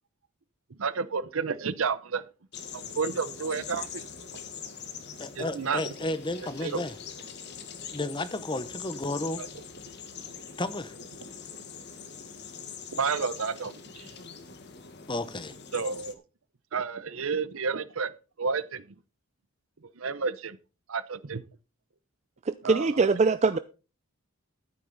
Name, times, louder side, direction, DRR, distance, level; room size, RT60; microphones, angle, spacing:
voice 1, 0.8-2.2 2.7-4.1 5.4-5.9 6.6-6.8 9.4-9.5 12.9-14.1 15.7-16.2 16.7-18.1 18.4-18.8 20.0-20.6 20.9-21.4 22.6-22.9, right 5 dB, 70° right, 0.7 m, -31 dB
sound 1, 2.5-16.1, left 7 dB, 50° left, 1.4 m, -43 dB
voice 2, 5.2-6.9 7.9-9.4 10.6-10.9 15.1-15.5, left 2 dB, 20° left, 0.8 m, -32 dB
voice 3, 22.4-23.6, right 4 dB, 30° right, 0.4 m, -23 dB
11.5 x 9.4 x 4.0 m
head